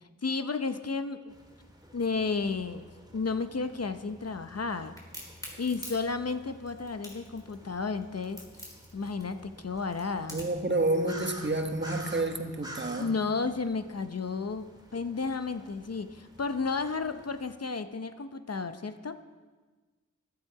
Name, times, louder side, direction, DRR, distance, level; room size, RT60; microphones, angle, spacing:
voice 1, 0.2-1.3 1.9-2.9 3.1-5.0 5.6-8.4 8.9-10.4 13.0-14.7 14.9-19.2, left 4 dB, 50° left, 9 dB, 0.8 m, -32 dB
sound 1, 1.3-17.5, right 1 dB, 15° right, 2.2 m, -50 dB
Crack, 5.0-10.7, equal, 10° left, 4.5 m, -45 dB
voice 2, 10.3-13.1, right 2 dB, 35° right, 5 dB, 1.4 m, -29 dB
14.5 x 12.0 x 4.8 m, 1.3 s
wide cardioid pair, 45°, 32 cm